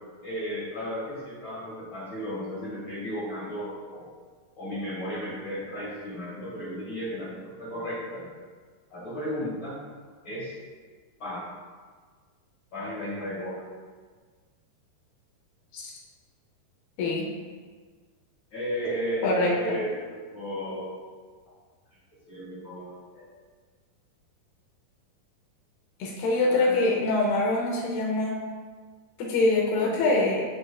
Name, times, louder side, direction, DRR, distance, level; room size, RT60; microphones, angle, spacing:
voice 1, 0.2-4.1 4.6-8.3 8.9-9.8 10.2-10.5 11.2-11.4 12.7-13.6 18.5-21.0 22.3-23.3 26.5-26.8 29.8-29.9, equal, 45° left, -8 dB, 1.8 m, -34 dB
voice 2, 19.2-19.8 26.0-28.4 29.2-30.4, left 2 dB, 80° left, -2 dB, 2.7 m, -24 dB
7.6 x 6.6 x 2.3 m, 1.5 s
omnidirectional pair, 4.6 m